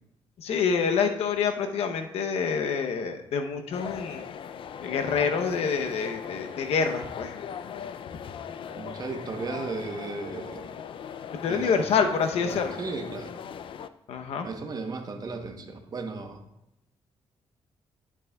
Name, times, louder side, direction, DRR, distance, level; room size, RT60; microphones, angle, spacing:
voice 1, 0.4-4.3 4.8-7.3 11.4-12.8 14.1-14.5, left 6 dB, 80° left, 5 dB, 0.8 m, -27 dB
sound 1, 3.7-13.9, left 8 dB, 55° left, 0.4 m, -39 dB
voice 2, 8.8-10.7 11.4-11.8 12.4-13.3 14.4-16.4, right 4 dB, 40° right, 5 dB, 1.0 m, -35 dB
11.0 x 7.2 x 2.3 m, 0.86 s
cardioid pair, 115°, 10 cm